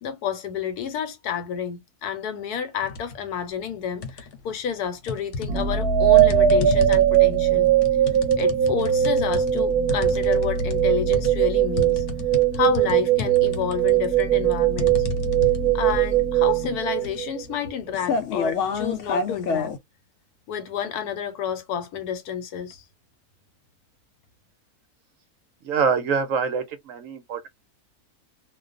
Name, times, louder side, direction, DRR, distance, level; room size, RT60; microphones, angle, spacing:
voice 1, 0.0-7.7 8.4-12.0 12.5-15.0 15.7-19.7 20.5-22.8, left 8 dB, 85° left, 1.2 m, -30 dB
sound 1, 2.8-3.2 3.6-4.5 5.1-19.8, left 4 dB, 65° left, 0.8 m, -31 dB
sound 2, 5.5-17.5, right 10 dB, 90° right, 1.1 m, -20 dB
voice 2, 25.6-27.5, right 5 dB, 70° right, 0.9 m, -25 dB
2.4 x 2.2 x 2.4 m
omnidirectional pair, 1.6 m